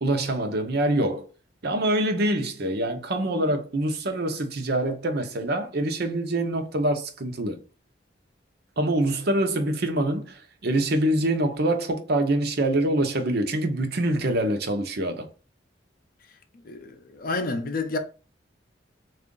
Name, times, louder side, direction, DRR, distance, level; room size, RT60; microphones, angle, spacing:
voice 1, 0.0-1.2 1.6-7.6 8.8-15.3, right 1 dB, 60° right, 0.7 m, -25 dB
voice 2, 16.6-18.0, left 3 dB, 50° left, 0.6 m, -29 dB
3.5 x 2.5 x 3.8 m
head